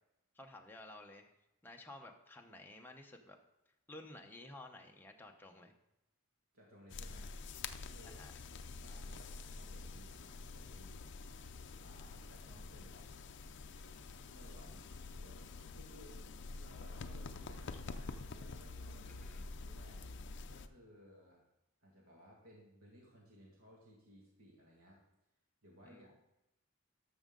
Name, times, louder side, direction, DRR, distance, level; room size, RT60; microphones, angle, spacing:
voice 1, 0.3-1.3 1.6-3.4 3.9-5.7 8.0-8.3 19.1-19.4 25.8-26.2, left 2 dB, 10° left, 2 dB, 0.8 m, -53 dB
voice 2, 6.5-7.4 7.8-8.2 8.5-11.0 11.8-13.1 14.2-16.2 16.6-19.2 19.6-20.1 20.5-21.4 21.8-25.0 25.6-26.2, equal, 70° right, -3 dB, 2.0 m, -60 dB
sound 1, 6.9-20.7, left 3 dB, 55° left, 0.5 m, -47 dB
12.5 x 6.4 x 3.8 m, 0.90 s
head